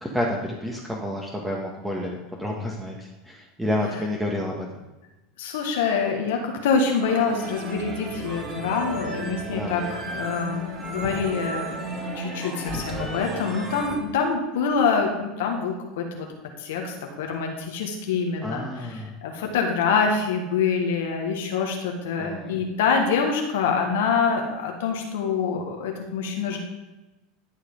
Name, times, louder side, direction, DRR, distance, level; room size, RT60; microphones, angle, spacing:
voice 1, 0.0-4.7 9.5-9.8 18.4-19.1 22.2-22.5, left 1 dB, 5° right, -2 dB, 1.5 m, -29 dB
voice 2, 5.4-11.8 12.1-16.3 16.6-26.6, left 5 dB, 70° left, 2 dB, 1.4 m, -25 dB
sound 1, 7.0-14.0, right 1 dB, 30° right, 2.5 m, -33 dB
11.5 x 4.9 x 5.3 m, 1.1 s
hypercardioid pair, 85°, 0 cm